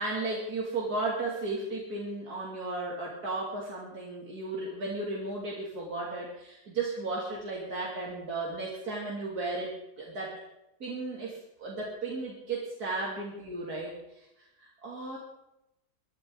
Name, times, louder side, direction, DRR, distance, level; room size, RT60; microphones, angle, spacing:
voice 1, 0.0-9.7 10.0-10.3 10.8-14.3 14.6-15.2, right 3 dB, 75° right, -4 dB, 3.3 m, -35 dB
23.0 x 12.0 x 3.9 m, 0.88 s
omnidirectional pair, 1.7 m